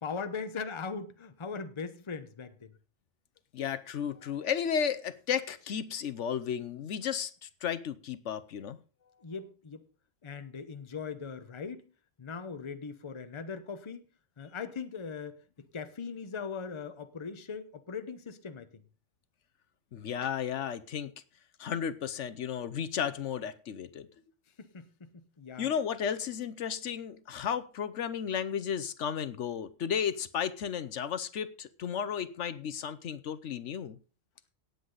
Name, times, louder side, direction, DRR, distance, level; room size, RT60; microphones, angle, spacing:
voice 1, 0.0-2.7 9.2-9.8 10.2-11.8 12.2-14.0 14.4-15.4 15.7-18.7 24.6-25.7, left 5 dB, 25° left, 0.8 m, -40 dB
voice 2, 3.5-8.8 19.9-21.1 21.6-24.1 25.6-34.0, left 8 dB, 70° left, 1.1 m, -33 dB
17.5 x 7.9 x 3.9 m
omnidirectional pair, 1.3 m